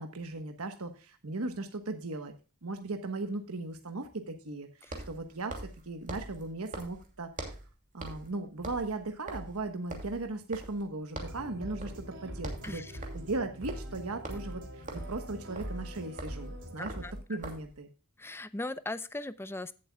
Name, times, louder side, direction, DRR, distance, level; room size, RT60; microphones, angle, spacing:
voice 1, 0.0-2.3 2.6-7.5 7.9-12.8 13.1-16.9 17.3-17.9, right 2 dB, 75° right, 6 dB, 1.2 m, -37 dB
sound 1, 1.5-1.6 4.8-7.7 8.0-8.3 8.6-10.9 11.2-11.5 11.8-12.1 12.3-17.8, right 2 dB, 35° right, 2.7 m, -43 dB
sound 2, 11.2-17.2, equal, 55° right, 3.2 m, -43 dB
voice 2, 16.8-17.4 18.2-19.7, left 2 dB, 10° left, 14 dB, 0.6 m, -39 dB
17.0 x 7.7 x 2.3 m, 0.33 s
head